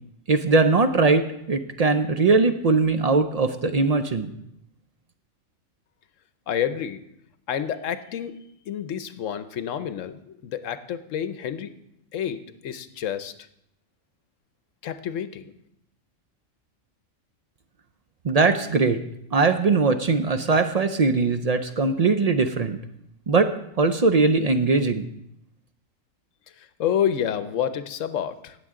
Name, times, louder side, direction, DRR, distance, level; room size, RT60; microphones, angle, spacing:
voice 1, 0.3-4.3 18.2-19.0 19.3-22.8 23.3-23.5 23.8-25.1, right 3 dB, 55° right, 8 dB, 0.4 m, -20 dB
voice 2, 6.5-7.0 7.5-8.4 8.7-11.7 12.1-13.3 14.8-15.4 26.6-28.6, left 9 dB, 75° left, 12 dB, 1.0 m, -29 dB
18.0 x 7.0 x 3.7 m, 0.77 s
omnidirectional pair, 1.3 m